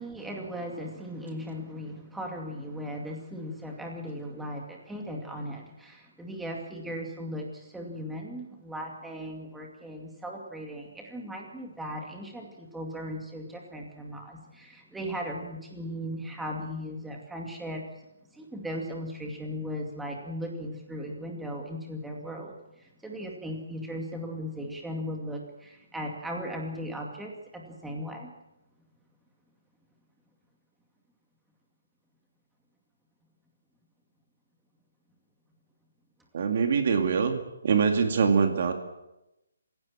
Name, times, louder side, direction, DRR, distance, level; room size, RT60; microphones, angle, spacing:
voice 1, 0.0-17.8 18.3-28.3, equal, ahead, 0 dB, 2.3 m, -37 dB
voice 2, 36.3-38.7, right 6 dB, 35° right, 5 dB, 2.2 m, -24 dB
27.0 x 16.5 x 7.4 m, 0.93 s
hypercardioid pair, 180°, 0 cm